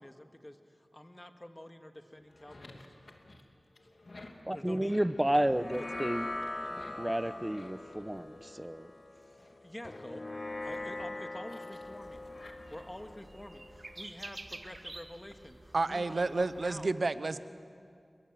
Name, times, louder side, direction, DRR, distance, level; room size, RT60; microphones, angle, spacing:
voice 1, 0.0-2.9 4.5-5.0 9.6-10.3 10.6-12.3 12.7-16.9, left 1 dB, 20° left, 5 dB, 2.1 m, -48 dB
sound 1, 2.1-8.8 9.3-13.2, left 2 dB, 70° left, 2.6 m, -55 dB
voice 2, 4.4-6.3 7.0-8.9, right 1 dB, 15° right, 13 dB, 1.0 m, -31 dB
sound 2, 5.4-14.1, left 2 dB, 50° left, 1.4 m, -42 dB
sound 3, 11.8-16.8, right 2 dB, 55° right, 1.8 m, -50 dB
voice 3, 15.7-17.4, right 3 dB, 75° right, 12 dB, 0.9 m, -30 dB
29.0 x 23.0 x 7.7 m, 2.4 s
wide cardioid pair, 45°, 0 cm